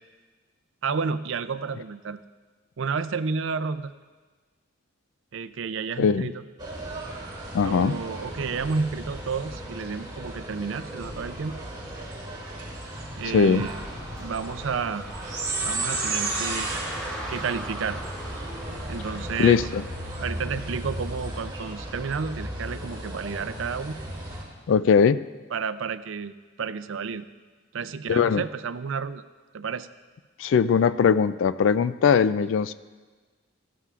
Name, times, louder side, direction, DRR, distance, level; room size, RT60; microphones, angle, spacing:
voice 1, 0.8-2.2 2.8-3.9 5.3-6.4 7.6-11.6 13.2-13.8 14.2-15.0 15.6-16.7 17.3-18.0 18.9-19.7 20.2-24.0 25.5-27.2 27.7-29.2 29.5-29.9, right 5 dB, 65° right, 13 dB, 0.5 m, -31 dB
voice 2, 6.0-6.3 7.5-8.0 13.3-13.6 19.4-19.8 24.7-25.2 28.1-28.4 30.4-32.7, left 6 dB, 65° left, 15 dB, 0.3 m, -20 dB
sound 1, 6.6-24.4, right 2 dB, 20° right, 2.4 m, -35 dB
Car, 12.9-21.5, right 1 dB, 5° left, 2.2 m, -40 dB
17.0 x 13.5 x 2.4 m, 1.4 s
head